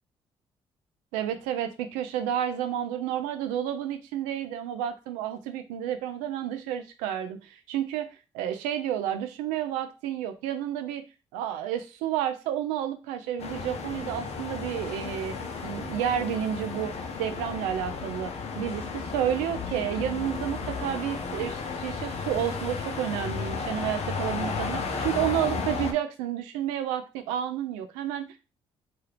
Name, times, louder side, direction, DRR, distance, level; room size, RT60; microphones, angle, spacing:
voice 1, 1.1-8.1 8.3-11.0 11.3-15.4 15.6-16.9 17.2-28.4, right 10 dB, 85° right, 8 dB, 0.5 m, -30 dB
sound 1, 13.4-25.9, left 4 dB, 55° left, 0.7 m, -33 dB
2.9 x 2.3 x 3.3 m, 0.30 s
hypercardioid pair, 50°, 13 cm